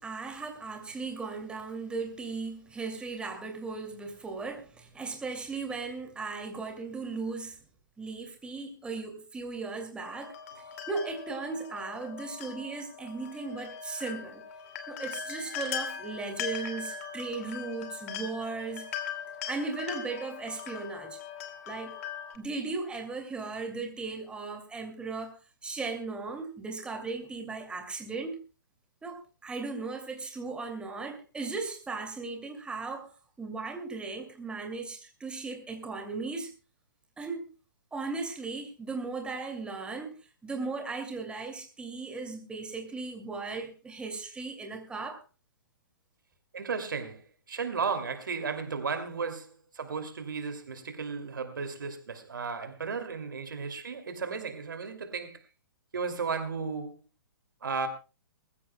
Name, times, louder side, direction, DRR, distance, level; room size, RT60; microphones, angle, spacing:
voice 1, 0.0-7.6 8.0-10.4 10.9-14.4 14.9-18.8 19.5-21.2 21.7-22.0 22.3-25.3 25.6-28.4 29.0-33.1 33.4-36.5 37.2-37.5 37.9-40.1 40.4-45.2, right 4 dB, 10° right, 2.5 m, -37 dB
sound 1, 10.0-22.4, left 7 dB, 45° left, 2.4 m, -40 dB
voice 2, 46.5-55.4 55.9-57.0 57.6-57.9, right 5 dB, 70° right, 2.7 m, -34 dB
22.5 x 15.0 x 2.2 m
figure-of-eight pair, 125°, 11 cm